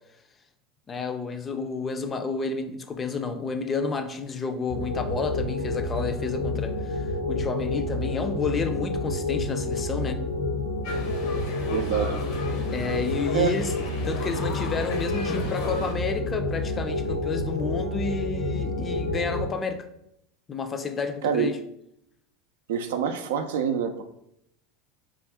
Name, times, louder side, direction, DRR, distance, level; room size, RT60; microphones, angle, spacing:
voice 1, 0.9-10.2 12.7-13.7 14.0-19.9 20.5-21.6, left 4 dB, 30° left, 7 dB, 0.4 m, -30 dB
sound 1, 4.7-19.5, left 2 dB, 90° left, 1.2 m, -29 dB
sound 2, 10.8-15.9, left 2 dB, 60° left, 0.8 m, -36 dB
voice 2, 11.7-12.1 13.3-13.5 21.2-21.5 22.7-24.0, right 7 dB, 70° right, 8 dB, 0.3 m, -26 dB
3.6 x 2.3 x 3.4 m, 0.76 s
hypercardioid pair, 80°, 0 cm